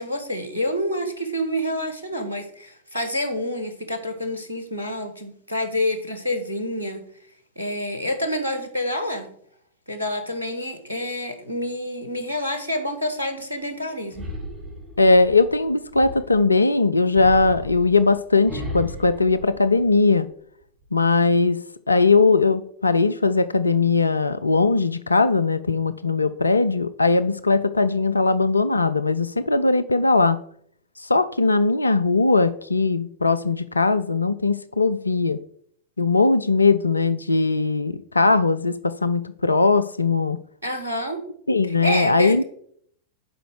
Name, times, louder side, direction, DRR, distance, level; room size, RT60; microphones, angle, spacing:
voice 1, 0.0-7.0 7.5-9.3 9.9-14.3 40.6-41.2 41.7-42.4, left 1 dB, 85° right, 8 dB, 1.5 m, -28 dB
sound 1, 14.1-16.5 17.1-20.2 20.6-21.2, equal, 25° right, 2.4 m, -36 dB
voice 2, 15.0-20.3 20.9-21.6 21.9-30.4 31.0-35.4 36.0-40.4 41.5-42.4, left 3 dB, 80° left, 13 dB, 0.4 m, -19 dB
11.0 x 5.1 x 4.8 m, 0.64 s
figure-of-eight pair, 90°, 0 cm